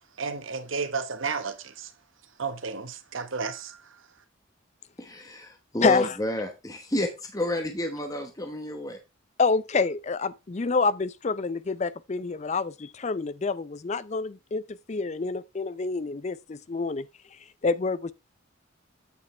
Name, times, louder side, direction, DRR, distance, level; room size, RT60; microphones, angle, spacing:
voice 1, 0.2-1.9 2.4-3.8, right 5 dB, 75° right, 1.1 m, -32 dB
voice 2, 5.0-9.0, left 1 dB, 15° left, 1.0 m, -30 dB
voice 3, 9.4-17.1 17.6-18.1, left 4 dB, 35° left, 0.4 m, -27 dB
8.4 x 7.1 x 3.2 m
head